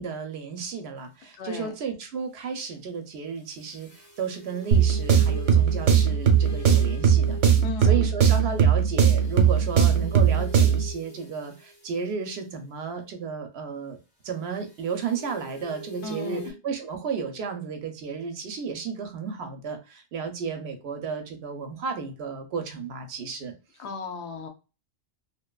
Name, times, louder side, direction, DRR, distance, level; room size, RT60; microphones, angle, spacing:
voice 1, 0.0-7.4 7.8-14.0 14.2-23.5, right 6 dB, 65° right, 6 dB, 0.8 m, -33 dB
voice 2, 1.4-1.7 7.6-8.0 16.0-16.5 23.8-24.5, left 3 dB, 70° left, 6 dB, 0.8 m, -35 dB
sound 1, 3.5-7.7 8.4-12.1 14.6-16.5, right 1 dB, 25° left, 0.7 m, -43 dB
sound 2, 4.7-10.9, right 7 dB, 90° right, 1.0 m, -20 dB
2.7 x 2.1 x 2.2 m, 0.30 s
omnidirectional pair, 1.2 m